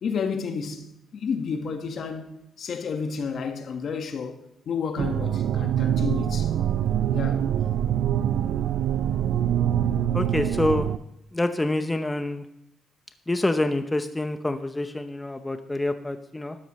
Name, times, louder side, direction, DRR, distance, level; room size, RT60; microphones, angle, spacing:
voice 1, 0.0-6.5 7.1-7.4, left 5 dB, 65° left, 1.5 m, -31 dB
sound 1, 5.0-11.0, right 10 dB, 80° right, 0.4 m, -24 dB
voice 2, 10.1-10.9 11.3-12.4 13.3-16.6, left 2 dB, 15° left, 0.7 m, -26 dB
12.5 x 11.0 x 3.2 m
cardioid pair, 90°, 0 cm